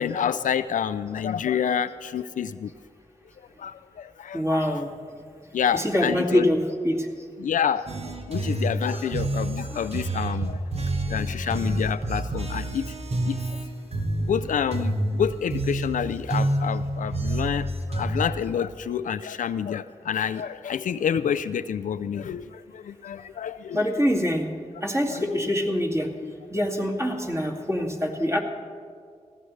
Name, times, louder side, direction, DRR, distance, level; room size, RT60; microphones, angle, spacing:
voice 1, 0.0-2.7 3.6-4.8 5.5-6.5 7.4-10.6 11.1-12.8 13.2-13.4 14.3-23.8 25.1-25.3 26.2-26.3, left 8 dB, 85° left, 13 dB, 0.4 m, -28 dB
voice 2, 4.3-4.9 5.7-7.0 9.7-9.8 23.7-24.4 24.8-26.1 26.5-28.4, equal, 20° right, 0 dB, 2.3 m, -24 dB
sound 1, 7.9-18.3, right 1 dB, 55° right, 1.4 m, -28 dB
18.5 x 15.0 x 3.2 m, 2.2 s
cardioid pair, 50°, 13 cm